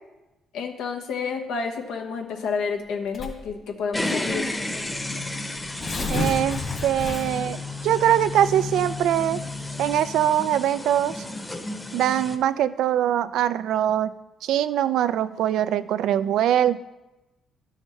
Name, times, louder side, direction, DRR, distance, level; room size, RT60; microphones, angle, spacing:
voice 1, 0.5-4.5, left 5 dB, 90° left, 2 dB, 1.2 m, -30 dB
Tearing, 3.1-3.5 4.4-4.5 4.8-4.9 5.6-7.5, left 3 dB, 50° left, 2.0 m, -30 dB
sound 1, 3.9-12.4, left 2 dB, 10° left, 0.9 m, -32 dB
voice 2, 6.1-7.6 7.8-9.4 9.8-11.1 11.9-14.1 14.4-16.8, right 11 dB, 80° right, 15 dB, 0.3 m, -22 dB
12.0 x 6.4 x 3.2 m, 1.0 s
cardioid pair, 90°, 0 cm